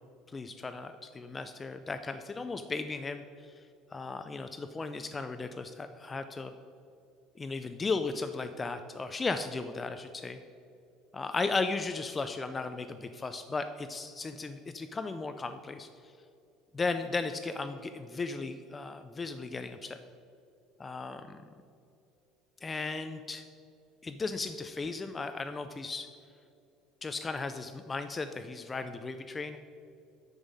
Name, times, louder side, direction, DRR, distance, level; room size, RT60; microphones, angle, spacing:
voice 1, 0.3-3.2 3.9-6.5 7.4-10.4 11.1-15.9 16.7-20.0 20.8-21.4 22.6-23.4 24.0-26.1 27.0-29.6, left 3 dB, 15° left, 9 dB, 0.3 m, -36 dB
7.3 x 7.0 x 5.2 m, 2.6 s
cardioid pair, 165°, 0 cm